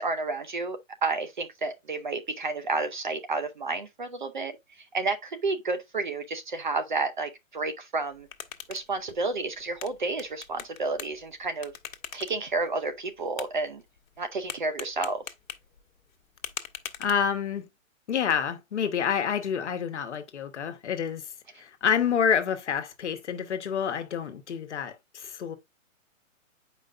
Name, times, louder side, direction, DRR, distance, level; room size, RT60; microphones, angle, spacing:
voice 1, 0.0-4.5 4.9-8.3 8.7-11.7 12.1-13.8 14.2-15.2, right 3 dB, 40° right, 0.6 m, -31 dB
sound 1, 8.0-17.6, left 8 dB, 85° left, 1.1 m, -44 dB
voice 2, 17.0-17.7 18.1-21.2 21.6-25.6, left 7 dB, 60° left, 1.2 m, -28 dB
7.9 x 5.1 x 2.4 m
hypercardioid pair, 180°, 39 cm